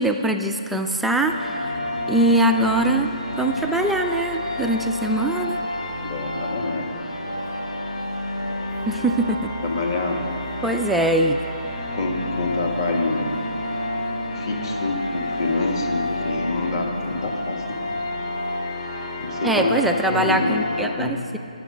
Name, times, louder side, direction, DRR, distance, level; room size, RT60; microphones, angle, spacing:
voice 1, 0.0-1.8 2.1-3.1 3.4-5.6 8.9-9.5 10.6-11.4 19.4-21.4, right 1 dB, ahead, 3 dB, 0.3 m, -22 dB
sound 1, 1.3-20.9, left 1 dB, 70° left, 3.7 m, -29 dB
voice 2, 6.1-6.9 9.6-10.3 11.9-13.3 14.3-17.8 19.2-21.2, left 3 dB, 35° left, 2 dB, 1.6 m, -26 dB
22.5 x 7.7 x 5.1 m, 2.6 s
hypercardioid pair, 160°, 4 cm